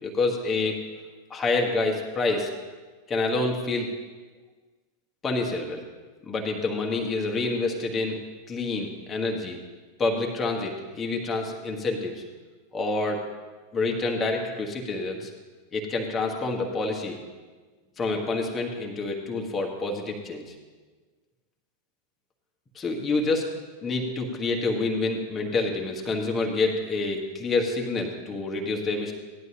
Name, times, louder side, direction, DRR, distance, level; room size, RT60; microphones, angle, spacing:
voice 1, 0.0-0.8 1.3-2.5 3.1-3.9 5.2-5.8 6.2-8.2 8.5-9.6 10.0-12.2 12.7-13.2 13.7-15.3 15.7-17.2 18.0-20.4 22.7-23.5 23.8-29.1, left 3 dB, 20° left, 0 dB, 1.4 m, -27 dB
16.5 x 11.0 x 2.9 m, 1.4 s
figure-of-eight pair, 90°, 0 cm